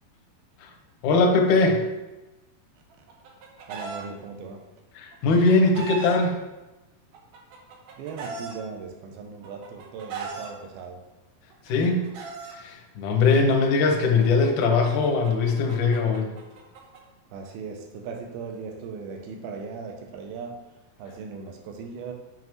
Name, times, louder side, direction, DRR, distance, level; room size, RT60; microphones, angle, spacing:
voice 1, 1.0-1.8 5.0-6.4 11.7-12.1 12.5-16.3, left 3 dB, 70° left, 2 dB, 1.9 m, -21 dB
Chicken rooster, 2.9-4.0 5.1-6.2 7.1-8.6 9.4-10.5 11.5-12.6 13.7-17.0, right 5 dB, 70° right, 2.3 m, -38 dB
voice 2, 3.7-4.6 8.0-11.0 17.3-20.6 21.0-22.1, right 5 dB, 90° right, 4 dB, 2.6 m, -38 dB
7.6 x 5.5 x 3.0 m, 1.1 s
omnidirectional pair, 4.3 m